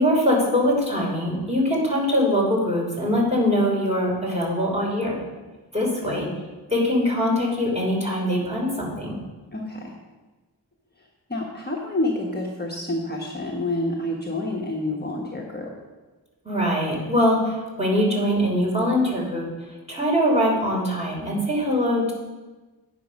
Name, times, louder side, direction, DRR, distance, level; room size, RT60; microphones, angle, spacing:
voice 1, 0.0-5.2 5.7-6.3 6.7-9.2 16.4-19.5 19.9-22.1, equal, 15° right, -3 dB, 3.3 m, -22 dB
voice 2, 9.5-9.9 11.0-15.7, left 1 dB, 20° left, -2 dB, 1.3 m, -28 dB
8.6 x 6.3 x 5.3 m, 1.2 s
wide cardioid pair, 55°, 43 cm